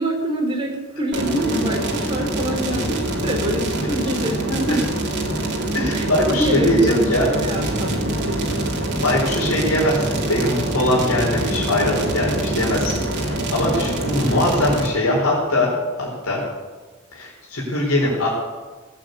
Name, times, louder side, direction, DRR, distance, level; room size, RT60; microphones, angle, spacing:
voice 1, 0.0-4.3 4.7-4.8 5.9-8.5, right 1 dB, 25° right, 0 dB, 4.2 m, -25 dB
sound 1, 1.1-14.9, right 1 dB, 55° right, 3.0 m, -25 dB
voice 2, 5.7-7.2 7.6-7.7 9.0-15.7 16.0-16.4 17.1-18.3, left 1 dB, 80° left, -4 dB, 4.5 m, -21 dB
18.5 x 9.0 x 8.3 m, 1.3 s
head